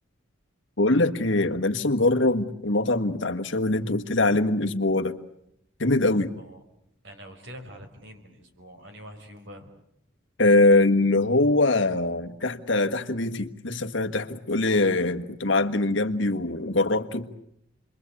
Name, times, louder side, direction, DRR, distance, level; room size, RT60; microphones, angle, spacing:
voice 1, 0.8-5.2 5.8-6.3 10.4-17.3, left 2 dB, 60° left, 6 dB, 1.5 m, -23 dB
voice 2, 7.0-9.7, equal, 60° right, 5 dB, 5.1 m, -45 dB
30.0 x 22.5 x 8.4 m, 0.75 s
head